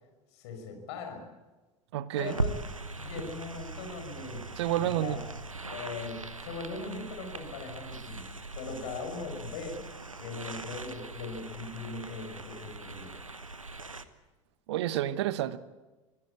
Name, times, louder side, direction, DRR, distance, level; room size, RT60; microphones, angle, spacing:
voice 1, 0.3-1.2 2.2-2.5 3.0-4.5 4.8-5.2 5.7-8.3 8.6-9.8 10.2-13.1, left 4 dB, 55° left, 5.7 m, -40 dB
voice 2, 1.9-2.3 4.6-5.2 14.7-15.6, right 13 dB, 60° right, 0.9 m, -29 dB
sound 1, 2.2-14.0, right 3 dB, 85° right, 1.1 m, -40 dB
24.5 x 17.0 x 8.5 m
figure-of-eight pair, 75°, 17 cm